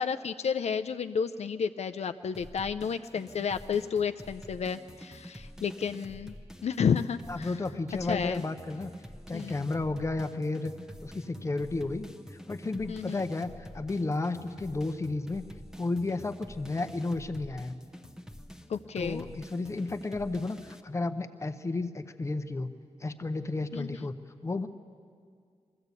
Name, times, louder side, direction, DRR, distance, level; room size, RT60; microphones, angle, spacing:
voice 1, 0.0-6.4 6.6-7.5 8.0-8.4 9.3-9.7 12.9-13.2 18.7-19.2 23.7-23.9, left 6 dB, 70° left, 10 dB, 0.4 m, -31 dB
sound 1, 2.3-20.8, equal, 5° right, 0.8 m, -47 dB
voice 2, 7.3-8.9 9.3-10.7 11.0-15.4 15.8-17.8 19.0-22.7 23.0-24.1 24.4-24.7, left 3 dB, 25° left, 9 dB, 0.7 m, -32 dB
22.0 x 14.5 x 8.2 m, 2.2 s
wide cardioid pair, 160°, 12 cm